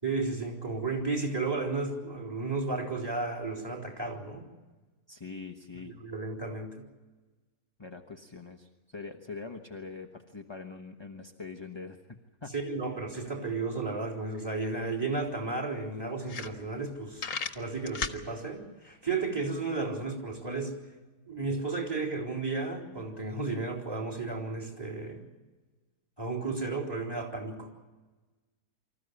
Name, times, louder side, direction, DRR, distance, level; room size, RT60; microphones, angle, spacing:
voice 1, 0.0-4.4 5.8-6.8 12.5-17.3 17.6-20.8 21.3-25.2 26.2-27.7, right 3 dB, 15° right, 1 dB, 3.9 m, -33 dB
voice 2, 5.1-6.0 7.8-12.0 12.4-12.5 13.2-13.3, left 4 dB, 20° left, 4 dB, 1.0 m, -43 dB
sound 1, 14.8-14.9 15.2-15.3 15.8-15.9 16.2-16.9 17.2-18.2, left 5 dB, 55° left, 1.6 m, -34 dB
25.5 x 14.5 x 9.8 m, 1.3 s
omnidirectional pair, 1.7 m